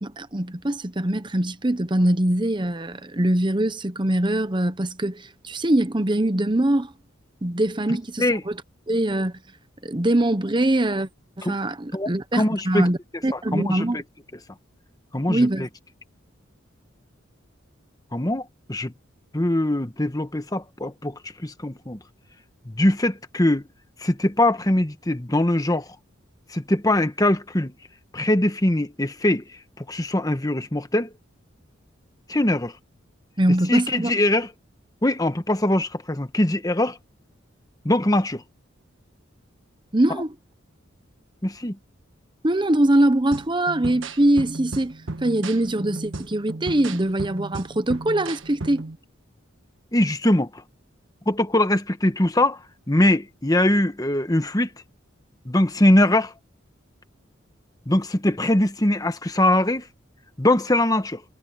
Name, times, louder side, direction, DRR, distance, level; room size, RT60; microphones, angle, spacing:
voice 1, 0.0-6.9 7.4-8.6 8.9-9.4 9.8-11.1 11.4-13.0 13.2-14.0 15.3-15.7 33.4-34.1 39.9-40.3 42.4-45.0 45.2-48.8, right 1 dB, 25° right, 0.9 m, -22 dB
voice 2, 11.9-12.9 13.3-14.0 15.1-15.5 18.1-18.9 19.3-22.0 22.6-23.6 24.0-26.0 26.5-27.7 28.1-31.1 32.3-32.8 33.7-34.5 35.0-37.0 37.8-38.4 41.4-41.8 49.9-50.6 51.3-54.7 55.4-56.3 57.9-59.9 60.4-61.2, left 1 dB, 20° left, 1.2 m, -22 dB
sound 1, 43.3-49.0, right 2 dB, 75° right, 1.5 m, -35 dB
head